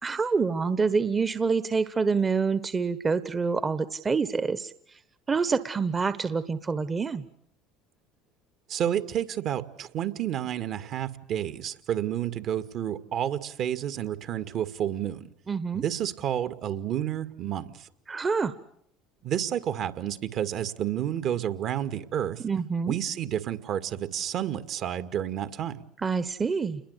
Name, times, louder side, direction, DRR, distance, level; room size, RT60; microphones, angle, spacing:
voice 1, 0.0-4.7 5.3-7.2 15.5-15.8 18.1-18.5 22.4-23.0 26.0-26.8, right 5 dB, 25° right, 13 dB, 1.3 m, -26 dB
voice 2, 8.7-15.3 15.7-17.9 19.2-22.4 22.9-25.8, right 10 dB, 55° right, 11 dB, 2.1 m, -30 dB
29.5 x 21.5 x 8.3 m, 0.69 s
hypercardioid pair, 75°, 0 cm